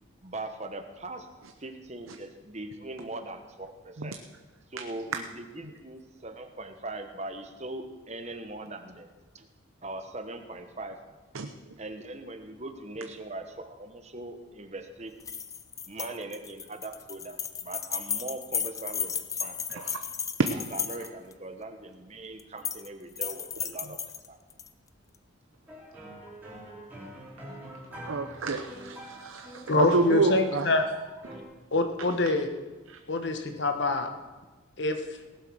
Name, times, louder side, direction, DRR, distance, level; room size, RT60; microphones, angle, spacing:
voice 1, 0.2-1.3 1.6-4.2 4.7-9.5 9.8-11.2 11.8-15.1 15.9-19.8 20.5-24.0 24.3-24.4, right 2 dB, 35° right, 7 dB, 1.2 m, -40 dB
sound 1, 15.2-21.3 22.4-22.9 23.2-24.7, left 7 dB, 15° left, 0.4 m, -34 dB
sound 2, 25.7-31.4, right 1 dB, 10° right, 3.5 m, -45 dB
voice 2, 28.0-30.8 32.0-32.2 32.9-33.0, right 3 dB, 85° right, 5 dB, 0.8 m, -29 dB
voice 3, 29.7-30.8 31.7-32.5 33.1-34.1 34.8-35.0, left 2 dB, 60° left, 7 dB, 1.3 m, -25 dB
18.0 x 7.8 x 6.3 m, 1.2 s
head